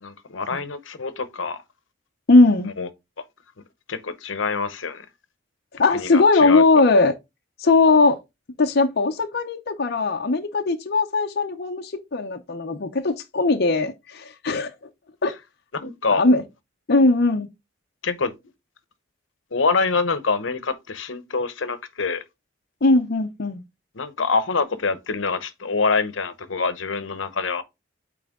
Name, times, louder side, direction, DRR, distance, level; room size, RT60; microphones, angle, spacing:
voice 1, 0.0-1.6 2.6-2.9 3.9-5.1 5.9-6.6 15.7-16.2 18.0-18.3 19.5-22.2 23.9-27.6, left 4 dB, 85° left, 0.9 m, -25 dB
voice 2, 2.3-2.7 5.7-7.1 7.6-8.2 8.6-14.7 15.2-15.3 16.1-16.4 16.9-17.5 22.8-23.6, left 3 dB, 60° left, 0.7 m, -19 dB
8.8 x 3.4 x 3.6 m
head